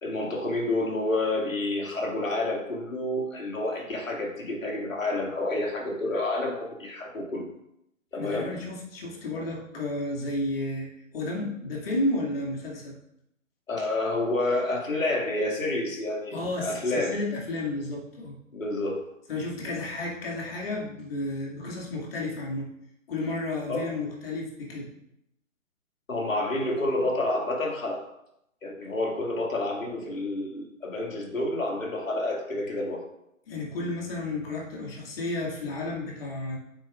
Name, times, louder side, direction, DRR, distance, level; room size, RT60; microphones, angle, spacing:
voice 1, 0.0-7.5 8.1-8.5 13.7-17.2 18.5-19.0 23.7-23.9 26.1-28.0 28.6-33.0, left 2 dB, 70° left, -1 dB, 2.4 m, -29 dB
voice 2, 8.1-12.9 16.3-18.4 19.3-22.7 23.1-24.9 33.5-36.6, left 2 dB, 45° left, -2 dB, 2.3 m, -32 dB
8.5 x 6.9 x 2.5 m, 0.80 s
figure-of-eight pair, 140°, 41 cm